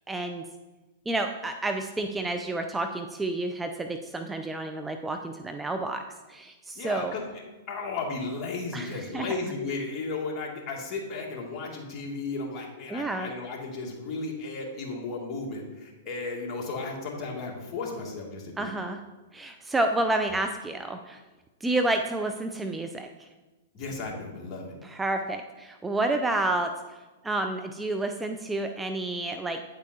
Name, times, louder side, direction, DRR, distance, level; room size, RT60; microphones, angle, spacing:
voice 1, 0.1-0.4 1.1-6.0 6.3-7.1 8.7-9.3 12.9-13.3 18.6-19.0 19.3-21.2 21.6-23.3 24.8-27.0 27.2-29.6, right 2 dB, 10° right, 6 dB, 0.5 m, -30 dB
voice 2, 6.8-7.2 7.7-18.8 23.7-24.6, left 3 dB, 35° left, -2 dB, 2.3 m, -34 dB
9.2 x 8.3 x 2.8 m, 1.2 s
hypercardioid pair, 110°, 0 cm